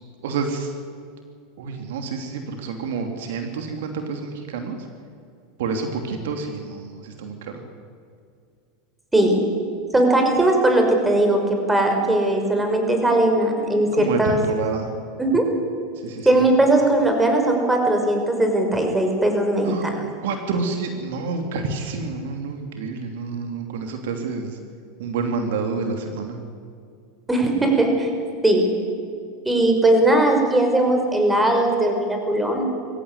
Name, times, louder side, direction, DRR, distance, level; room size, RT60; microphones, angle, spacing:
voice 1, 0.2-0.7 1.6-4.9 5.6-7.6 13.9-14.9 15.9-16.4 19.6-24.6 25.0-26.4, right 4 dB, 70° right, 5 dB, 3.0 m, -28 dB
voice 2, 9.9-11.4 11.7-14.4 15.2-15.4 16.3-20.0 27.3-28.1 28.4-28.6 29.5-32.6, right 1 dB, 10° right, 3 dB, 5.8 m, -19 dB
23.0 x 16.0 x 10.0 m, 2.3 s
hypercardioid pair, 95°, 0 cm